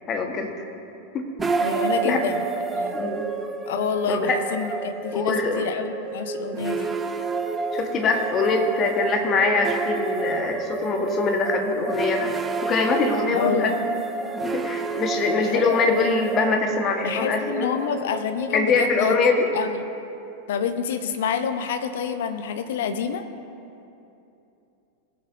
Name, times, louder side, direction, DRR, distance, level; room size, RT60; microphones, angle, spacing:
voice 1, 0.1-0.5 1.1-1.3 2.0-2.3 2.9-3.3 4.0-4.4 5.1-5.6 7.7-12.3 12.6-13.8 14.4-17.7 18.5-19.5, left 4 dB, 30° left, 3 dB, 1.2 m, -23 dB
sound 1, 1.4-20.5, right 4 dB, 15° right, 0.6 m, -30 dB
voice 2, 1.6-2.5 2.7-3.0 3.7-6.9 13.3-13.8 15.4-15.9 17.0-19.2 19.5-19.9 20.5-23.2, left 7 dB, 55° left, 9 dB, 0.7 m, -28 dB
19.5 x 7.8 x 2.6 m, 2.8 s
figure-of-eight pair, 90°, 0 cm